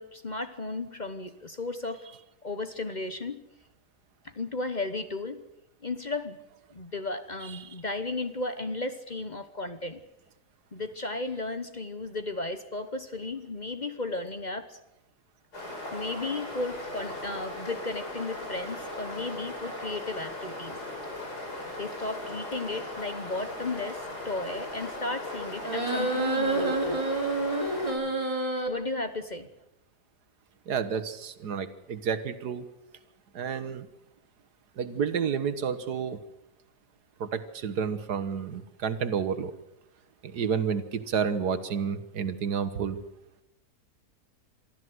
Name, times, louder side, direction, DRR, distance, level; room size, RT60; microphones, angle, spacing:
voice 1, 0.0-2.1 2.4-3.4 4.2-5.4 5.8-6.4 6.7-10.0 10.7-14.8 15.9-20.8 21.8-27.0 28.7-29.5, left 2 dB, 30° left, 10 dB, 1.0 m, -34 dB
sound 1, 15.5-27.9, left 1 dB, 80° left, 5.9 m, -38 dB
sound 2, 25.6-28.7, right 2 dB, 20° right, 3.0 m, -28 dB
voice 2, 30.7-32.7 33.3-33.9 34.8-36.2 37.2-39.5 40.2-43.0, right 6 dB, 80° right, 12 dB, 1.8 m, -30 dB
24.0 x 14.0 x 7.9 m, 0.87 s
omnidirectional pair, 1.7 m